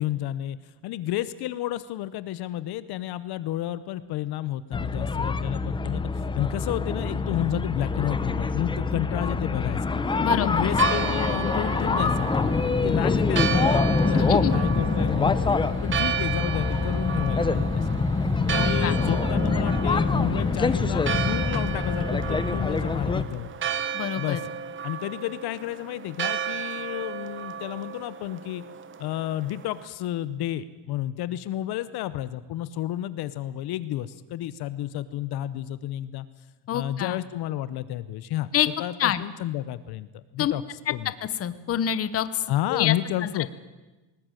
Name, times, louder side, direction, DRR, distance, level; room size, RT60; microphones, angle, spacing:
voice 1, 0.0-10.0 10.3-12.3 12.8-15.4 15.8-17.9 18.5-23.5 24.2-24.4 24.8-28.6 29.0-36.3 36.7-38.5 38.8-40.6 40.9-41.1 42.5-43.5, left 13 dB, 55° left, 15 dB, 0.9 m, -31 dB
sound 1, 4.7-23.2, left 4 dB, 10° left, 0.7 m, -25 dB
voice 2, 10.2-10.6 14.1-14.5 18.5-19.0 23.9-24.4 36.7-37.2 38.5-38.7 39.0-39.2 40.4-40.5 41.3-42.9 43.2-43.5, left 10 dB, 30° left, 13 dB, 0.9 m, -27 dB
Church bell, 10.4-29.8, right 7 dB, 25° right, 0.9 m, -33 dB
19.5 x 19.5 x 9.1 m, 1.1 s
cardioid pair, 175°, 45 cm